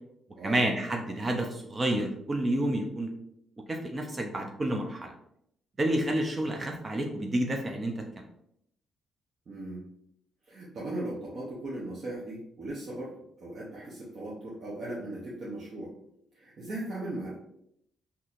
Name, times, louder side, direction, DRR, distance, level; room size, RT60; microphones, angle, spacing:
voice 1, 0.4-3.1 3.7-5.1 5.8-8.2, right 1 dB, 30° right, 2 dB, 0.5 m, -29 dB
voice 2, 9.5-9.8 10.5-15.9 16.3-17.3, right 1 dB, 50° right, -6 dB, 0.9 m, -38 dB
4.1 x 2.8 x 2.5 m, 0.74 s
cardioid pair, 90°, 0 cm